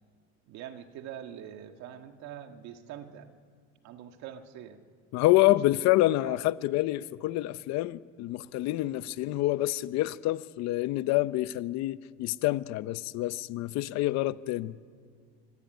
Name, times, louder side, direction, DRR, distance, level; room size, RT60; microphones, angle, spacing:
voice 1, 0.5-3.3 3.8-4.8 6.2-6.4, right 10 dB, 60° right, 2.1 m, -44 dB
voice 2, 5.1-14.8, left 17 dB, 60° left, 0.8 m, -27 dB
25.0 x 24.5 x 9.4 m
cardioid pair, 150°, 31 cm